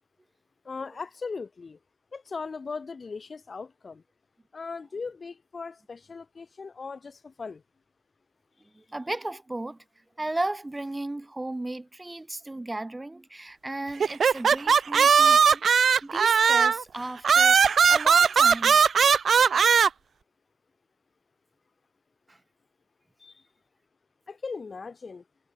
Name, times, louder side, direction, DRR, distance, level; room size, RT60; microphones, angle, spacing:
voice 1, 0.6-1.8 2.1-4.0 4.5-7.6 23.2-23.3 24.3-25.2, left 4 dB, 40° left, 3.3 m, -38 dB
voice 2, 8.8-9.8 10.2-15.6 16.0-18.8 22.3-22.4, right 2 dB, 15° right, 3.7 m, -35 dB
sound 1, 14.0-16.8 17.2-19.9, right 6 dB, 60° right, 1.2 m, -19 dB
wide cardioid pair, 155°, 0 cm